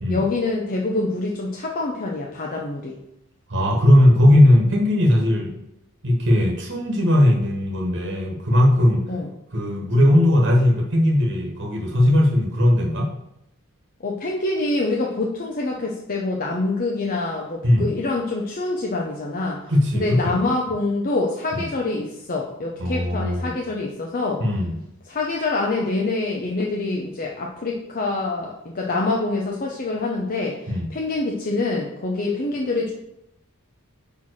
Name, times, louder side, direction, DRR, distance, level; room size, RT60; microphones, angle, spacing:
voice 1, 0.1-3.0 9.1-9.3 14.0-19.6 19.9-24.4 25.1-32.9, left 2 dB, 40° left, -1 dB, 0.7 m, -25 dB
voice 2, 3.5-5.6 6.0-9.0 9.5-13.1 17.6-17.9 19.7-20.4 21.5-21.6 22.8-23.5 24.4-24.8 30.7-30.9, left 1 dB, 55° right, -1 dB, 1.3 m, -18 dB
5.7 x 4.6 x 6.2 m, 0.85 s
head